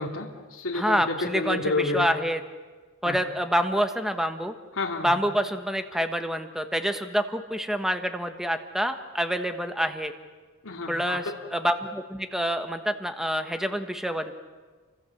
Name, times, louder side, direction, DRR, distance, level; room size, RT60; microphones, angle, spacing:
voice 1, 0.0-2.0 3.0-3.2 4.7-5.1 10.6-11.2, left 3 dB, 65° left, 0 dB, 2.6 m, -29 dB
voice 2, 0.7-2.4 3.0-4.5 5.0-10.1 10.9-14.3, equal, ahead, 7 dB, 1.3 m, -27 dB
29.5 x 25.0 x 7.2 m, 1.4 s
head